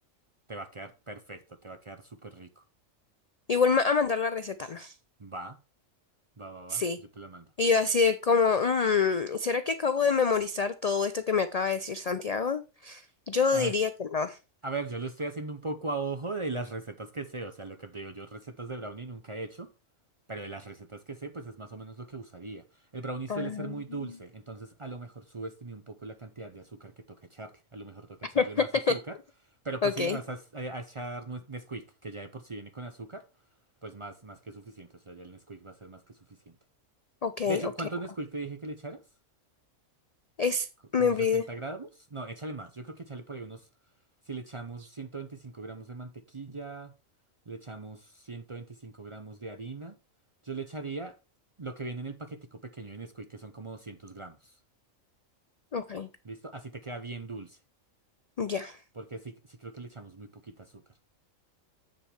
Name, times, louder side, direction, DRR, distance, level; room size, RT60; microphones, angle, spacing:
voice 1, 0.5-2.6 5.2-5.6 6.4-7.5 13.5-13.7 14.6-19.7 20.3-29.2 29.6-33.2 33.8-36.6 37.5-39.0 41.0-43.7 44.3-46.9 47.5-50.0 50.4-51.2 51.6-54.5 56.2-57.6 58.9-60.8, right 3 dB, 35° right, 0.5 m, -39 dB
voice 2, 3.5-4.9 6.7-7.0 7.6-14.4 23.3-24.0 28.3-28.9 29.8-30.2 37.2-37.6 40.4-40.7 40.9-41.4 55.7-56.1 58.4-58.8, left 5 dB, 75° left, 0.3 m, -26 dB
7.7 x 7.2 x 3.3 m
omnidirectional pair, 1.4 m